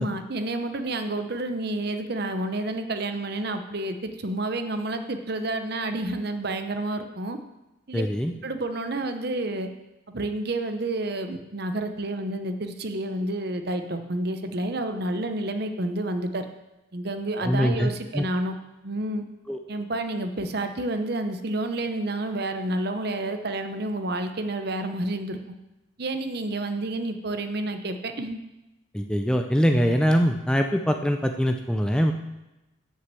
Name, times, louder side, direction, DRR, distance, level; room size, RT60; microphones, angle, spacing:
voice 1, 0.0-7.4 7.9-8.0 8.4-9.7 10.1-16.5 16.9-18.5 18.8-19.2 19.7-25.6 26.0-28.4, right 2 dB, 50° right, 7 dB, 0.8 m, -29 dB
voice 2, 7.9-8.3 17.4-17.9 18.1-18.3 19.5-19.6 28.9-32.1, equal, 5° left, 4 dB, 0.5 m, -23 dB
8.0 x 6.6 x 7.6 m, 1.0 s
head